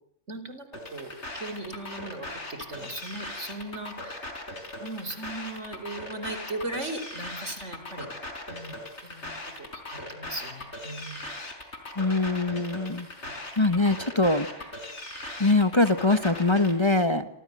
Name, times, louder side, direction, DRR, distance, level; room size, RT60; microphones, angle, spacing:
voice 1, 0.3-4.3 4.8-8.1 8.5-8.8 9.0-11.3 13.2-13.4 17.1-17.2, right 2 dB, 70° right, 10 dB, 4.8 m, -38 dB
sound 1, 0.7-16.7, left 1 dB, 65° left, 5.5 m, -39 dB
voice 2, 12.0-13.1 13.6-14.7 15.4-17.2, left 2 dB, 25° left, 9 dB, 1.4 m, -23 dB
27.0 x 27.0 x 7.7 m, 0.65 s
omnidirectional pair, 1.3 m